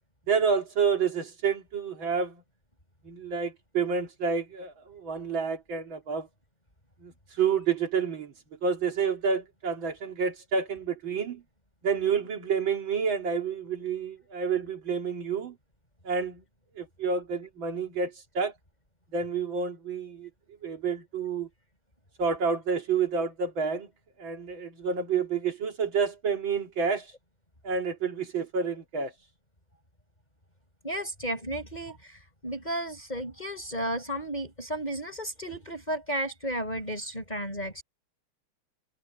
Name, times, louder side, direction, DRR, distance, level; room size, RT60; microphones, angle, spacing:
voice 1, 0.3-2.4 3.0-6.3 7.0-8.3 8.6-11.4 11.8-15.6 16.0-16.4 16.8-18.5 19.1-20.3 20.6-21.5 22.2-23.9 24.2-27.1 27.6-29.1, right 5 dB, 70° right, 3.3 m, -29 dB
voice 2, 30.8-37.8, right 1 dB, 20° left, 6.3 m, -33 dB
omnidirectional pair, 2.2 m